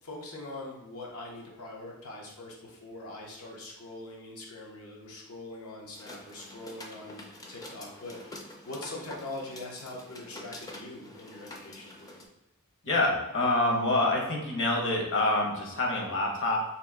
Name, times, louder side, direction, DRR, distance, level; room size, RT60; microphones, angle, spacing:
voice 1, 0.0-12.1, left 2 dB, 85° left, -2 dB, 0.7 m, -43 dB
sound 1, 5.9-12.2, left 1 dB, 15° left, 0.4 m, -47 dB
voice 2, 12.8-16.6, left 2 dB, 60° left, 0 dB, 0.9 m, -26 dB
2.8 x 2.5 x 3.5 m, 1.0 s
head